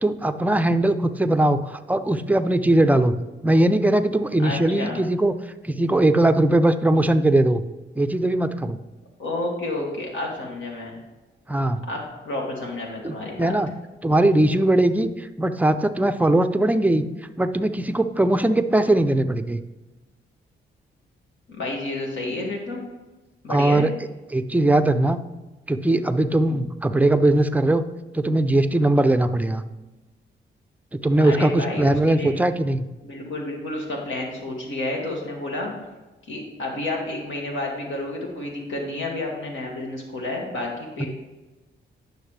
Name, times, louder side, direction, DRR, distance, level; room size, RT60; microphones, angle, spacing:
voice 1, 0.0-3.2 3.4-5.3 5.6-7.6 8.0-8.8 11.5-11.8 13.0-13.7 14.0-17.0 17.4-19.6 23.5-23.9 24.3-25.2 25.7-27.8 28.1-29.6 30.9-32.9 41.0-41.1, right 1 dB, 10° right, 9 dB, 0.4 m, -20 dB
voice 2, 4.4-5.0 9.2-11.0 11.8-13.6 21.5-22.8 23.4-23.9 31.2-32.4 33.0-35.7 36.3-41.1, left 2 dB, 75° left, -1 dB, 2.1 m, -30 dB
9.7 x 6.5 x 3.3 m, 1.2 s
cardioid pair, 95°, 20 cm